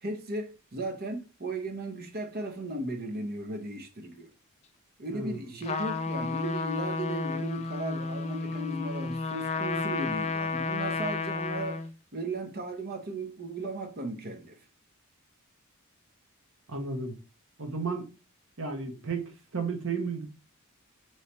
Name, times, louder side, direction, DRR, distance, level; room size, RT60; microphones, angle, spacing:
voice 1, 0.0-4.3 5.0-11.9 12.1-14.6, right 2 dB, 45° right, 0.8 m, -36 dB
Trumpet, 5.6-11.9, left 4 dB, 30° left, 0.4 m, -32 dB
voice 2, 16.7-17.2 17.6-18.1 18.6-20.3, right 4 dB, 65° right, 1.1 m, -33 dB
3.2 x 3.1 x 4.2 m
head